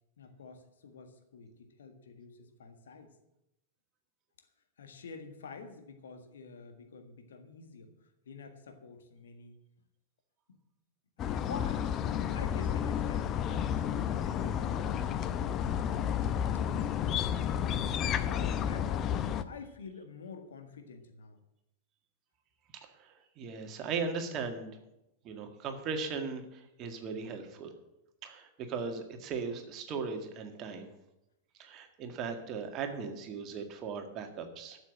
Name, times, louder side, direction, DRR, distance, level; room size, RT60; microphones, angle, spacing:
voice 1, 0.2-3.1 4.8-9.5 10.5-10.6 11.2-15.8 16.5-19.1 19.4-21.4, left 5 dB, 65° left, 6 dB, 1.7 m, -49 dB
sound 1, 11.2-19.4, left 9 dB, 30° left, 0.7 m, -31 dB
voice 2, 23.0-24.7 25.2-27.7 28.2-30.9 31.6-34.8, right 5 dB, 35° right, 5 dB, 1.8 m, -38 dB
12.5 x 7.2 x 7.6 m, 0.87 s
figure-of-eight pair, 90°, 0 cm